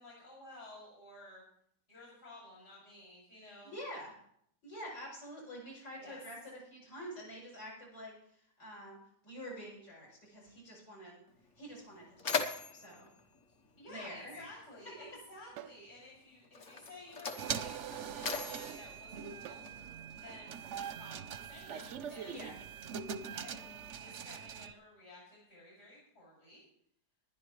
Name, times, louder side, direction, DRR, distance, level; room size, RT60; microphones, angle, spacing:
voice 1, 0.0-1.4 1.9-3.8 6.0-6.2 13.8-19.6 20.1-22.4 23.3-26.6, left 1 dB, 60° left, -6 dB, 6.6 m, -53 dB
voice 2, 3.6-4.1 4.6-9.0 9.2-11.2 11.6-13.1 13.9-14.5 22.3-22.5 22.8-23.2, equal, 80° left, -6 dB, 7.6 m, -47 dB
Mechanisms, 11.3-11.4 11.7-14.5 15.5-15.6 16.4-20.0, left 5 dB, 45° left, 1.4 m, -40 dB
sound 1, 15.6-15.9 17.4-17.6 19.4-19.7, right 12 dB, 90° right, 1.3 m, -49 dB
sound 2, 17.4-24.7, right 7 dB, 60° right, 0.8 m, -42 dB
20.5 x 11.5 x 3.2 m, 0.68 s
omnidirectional pair, 1.9 m